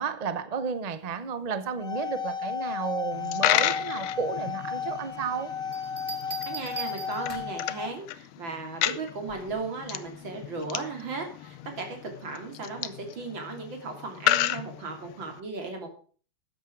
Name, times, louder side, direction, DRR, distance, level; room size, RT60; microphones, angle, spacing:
voice 1, 0.0-5.5, right 6 dB, 80° right, 0.3 m, -32 dB
sound 1, 1.7-7.9, left 6 dB, 50° left, 0.3 m, -34 dB
Coin (dropping), 3.1-15.4, left 13 dB, 85° left, 1.6 m, -33 dB
Bell, 5.7-7.7 9.3-9.6, right 5 dB, 15° right, 2.0 m, -40 dB
voice 2, 6.5-16.0, right 3 dB, 60° right, 3.7 m, -36 dB
13.5 x 9.3 x 4.7 m
omnidirectional pair, 2.3 m